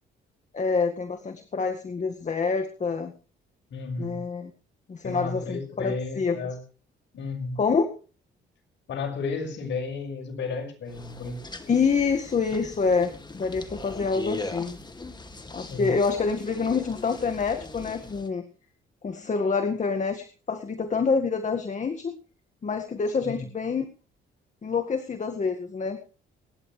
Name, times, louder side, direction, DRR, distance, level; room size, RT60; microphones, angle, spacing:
voice 1, 0.5-3.1 4.0-4.5 4.9-6.4 7.6-7.9 11.7-14.8 15.5-18.5 19.0-22.2 22.6-23.9 24.6-26.0, left 5 dB, 35° left, 6 dB, 1.8 m, -27 dB
voice 2, 3.7-4.2 5.0-6.6 7.1-7.6 8.9-11.4 15.6-15.9 23.2-23.4, left 4 dB, 65° left, 2 dB, 6.1 m, -33 dB
sound 1, 10.9-18.3, left 3 dB, 20° left, 2.3 m, -40 dB
25.5 x 11.0 x 3.3 m, 0.37 s
cardioid pair, 90°, 20 cm